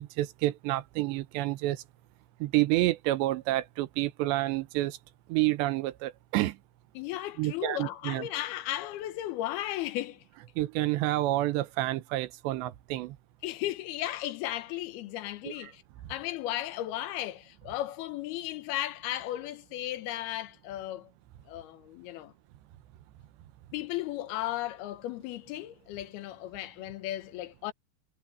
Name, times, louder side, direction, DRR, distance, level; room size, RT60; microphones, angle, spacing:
voice 1, 0.0-1.8 2.4-5.0 5.3-6.6 7.4-8.3 10.6-13.2 15.4-15.7, right 17 dB, 85° right, 3.2 m, -29 dB
voice 2, 6.9-10.2 13.4-15.8 16.1-21.1 21.5-22.3 23.7-27.7, left 14 dB, 75° left, 2.8 m, -35 dB
omnidirectional pair, 5.0 m